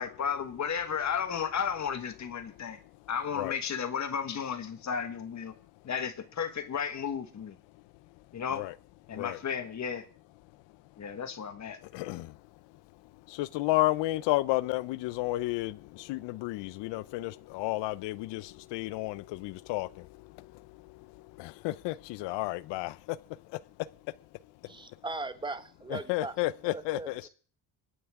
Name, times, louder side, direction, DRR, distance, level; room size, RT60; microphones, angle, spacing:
voice 1, 0.0-2.8 3.1-5.5 5.8-7.6 8.3-8.6 9.1-10.0 11.0-11.8, left 7 dB, 40° left, 1.5 m, -33 dB
voice 2, 11.9-12.3 13.4-15.8 16.1-19.9 21.4-22.9 25.9-27.3, left 18 dB, 85° left, 0.6 m, -31 dB
voice 3, 24.7-26.3 26.7-27.1, right 3 dB, 10° right, 1.1 m, -38 dB
26.0 x 9.3 x 3.6 m
cardioid pair, 110°, 42 cm